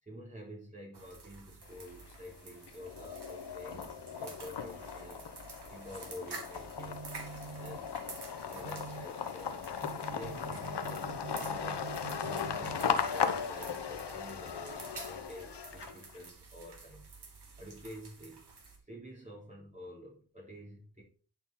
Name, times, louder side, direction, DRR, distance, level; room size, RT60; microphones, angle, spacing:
voice 1, 0.0-7.0 7.6-8.0 8.4-9.6 10.1-18.4 18.8-21.0, equal, 15° right, -4 dB, 3.8 m, -49 dB
sound 1, 0.9-18.8, right 4 dB, 65° right, 2.7 m, -51 dB
sound 2, 1.6-2.3 2.7-16.2, left 7 dB, 70° left, 1.1 m, -37 dB
sound 3, 6.5-13.4, right 8 dB, 45° right, 0.5 m, -48 dB
10.5 x 6.4 x 4.3 m, 0.41 s
cardioid pair, 40°, 42 cm